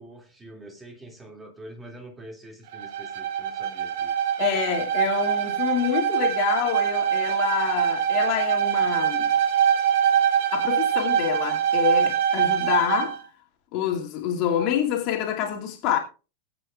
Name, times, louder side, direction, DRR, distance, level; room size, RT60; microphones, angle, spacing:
voice 1, 0.0-4.1, right 1 dB, 15° right, 2.6 m, -45 dB
Bowed string instrument, 2.7-13.2, right 9 dB, 55° right, 1.5 m, -24 dB
voice 2, 4.4-9.3 10.5-13.2 13.7-16.0, left 9 dB, 40° left, 2.5 m, -27 dB
21.0 x 8.8 x 2.5 m
figure-of-eight pair, 90°, 0 cm